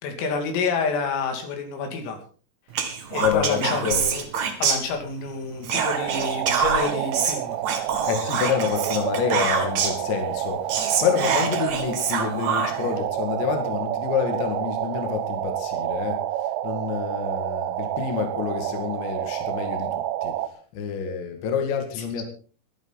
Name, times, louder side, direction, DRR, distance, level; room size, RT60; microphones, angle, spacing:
voice 1, 0.0-2.2 3.1-4.3 4.6-7.6 22.0-22.1, left 4 dB, 85° left, 4 dB, 5.3 m, -28 dB
Whispering, 2.7-5.3 5.6-10.1 10.4-10.5 10.7-12.9, right 6 dB, 50° right, 2.5 m, -26 dB
voice 2, 3.2-4.0 8.1-16.2 16.6-20.4 20.7-22.2, left 7 dB, 65° left, 4 dB, 4.3 m, -28 dB
sound 1, 5.7-20.5, right 13 dB, 80° right, 3.5 m, -29 dB
23.5 x 11.0 x 4.1 m, 0.41 s
omnidirectional pair, 5.8 m